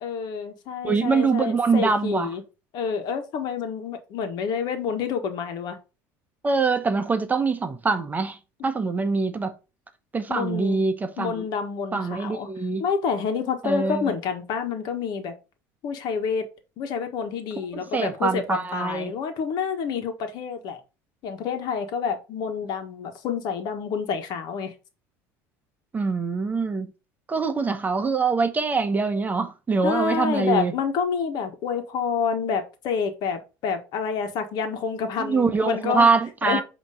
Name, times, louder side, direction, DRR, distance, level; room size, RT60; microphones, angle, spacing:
voice 1, 0.0-2.4 2.7-5.8 10.3-10.8 11.2-12.5 12.8-15.3 15.8-16.5 16.8-20.8 21.2-24.7 29.8-36.1 36.4-36.6, left 6 dB, 60° left, 1.4 m, -28 dB
voice 2, 0.8-2.3 6.4-8.4 8.6-9.5 10.1-11.4 11.9-12.8 13.6-14.1 17.7-19.1 25.9-26.9 27.3-30.7 35.2-36.6, right 4 dB, 20° right, 1.0 m, -24 dB
8.1 x 3.1 x 5.2 m
supercardioid pair, 105°, 8 cm